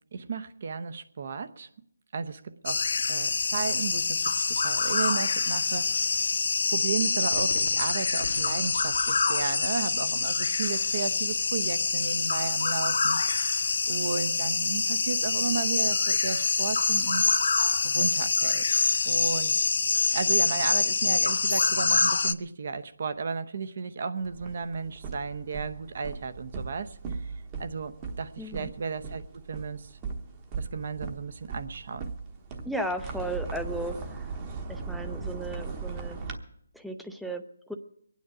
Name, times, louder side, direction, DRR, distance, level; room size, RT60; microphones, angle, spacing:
voice 1, 0.1-1.7 2.1-6.2 6.7-13.2 13.9-17.3 17.8-19.7 20.1-27.3 27.6-29.2 29.5-29.9 30.5-32.1, right 5 dB, 45° right, 11 dB, 0.8 m, -34 dB
sound 1, 2.7-22.3, left 4 dB, 60° left, 0.5 m, -26 dB
Cheering / Fireworks, 7.3-13.3, left 3 dB, 80° left, 1.2 m, -45 dB
sound 2, 24.2-36.4, right 4 dB, 20° right, 1.0 m, -38 dB
voice 2, 28.4-28.7 32.6-34.3 34.7-36.2 36.7-37.7, right 1 dB, ahead, 7 dB, 0.5 m, -35 dB
23.0 x 9.4 x 5.0 m, 0.71 s
hypercardioid pair, 165°, 0 cm